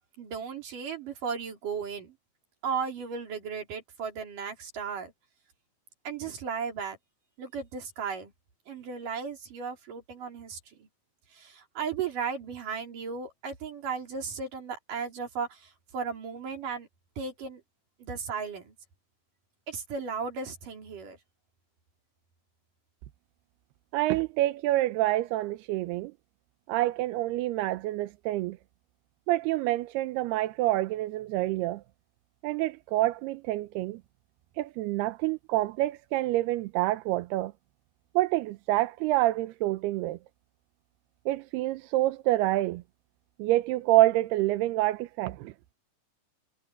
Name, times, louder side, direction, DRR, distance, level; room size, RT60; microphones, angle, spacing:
voice 1, 0.2-2.2 2.6-5.1 6.1-7.0 7.4-8.3 8.7-10.9 11.3-16.9 17.2-17.6 18.0-18.7 19.7-21.2, right 6 dB, 50° right, 5.3 m, -35 dB
voice 2, 23.9-26.1 26.7-28.6 29.3-31.8 32.4-34.0 34.6-37.5 38.2-40.2 41.3-42.8 43.4-45.5, right 16 dB, 85° right, 2.7 m, -27 dB
omnidirectional pair, 4.8 m